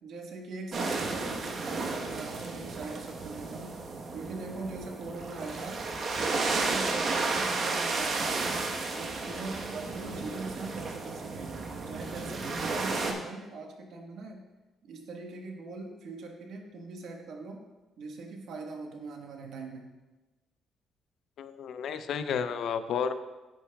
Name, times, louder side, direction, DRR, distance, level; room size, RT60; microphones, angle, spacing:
voice 1, 0.0-3.8 4.1-5.8 6.2-8.6 9.0-11.6 11.9-14.4 14.8-17.6 18.0-19.9, right 3 dB, 75° right, 2 dB, 1.3 m, -41 dB
sound 1, 0.7-13.1, right 3 dB, 50° right, 1.0 m, -33 dB
voice 2, 21.4-23.1, left 7 dB, 70° left, 10 dB, 0.5 m, -32 dB
10.5 x 9.1 x 2.3 m, 1.1 s
cardioid pair, 120°, 0 cm